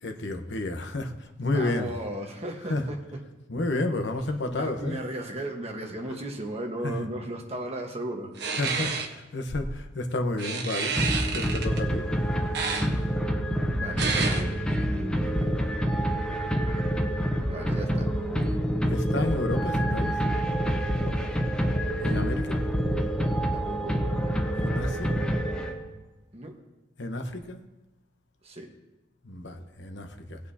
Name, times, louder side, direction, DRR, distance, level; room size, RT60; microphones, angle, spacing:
voice 1, 0.0-1.9 2.7-2.8 3.5-5.0 6.8-6.9 8.6-10.9 11.3-12.1 18.9-20.2 22.0-22.6 24.5-25.2 27.0-27.6 29.2-30.4, left 2 dB, 75° left, 6 dB, 1.0 m, -31 dB
voice 2, 1.5-3.2 4.5-8.3 13.7-14.6 14.9-15.9 17.5-18.1 21.0-21.2 23.5-23.9 26.3-26.5 28.4-28.7, right 1 dB, 35° right, 1 dB, 1.4 m, -36 dB
sound 1, 8.4-9.1 10.4-11.8 12.5-12.9 14.0-14.4, right 5 dB, 65° right, 1.1 m, -29 dB
sound 2, 10.9-26.0, equal, 5° left, 0.8 m, -27 dB
18.5 x 8.4 x 2.8 m, 1.1 s
head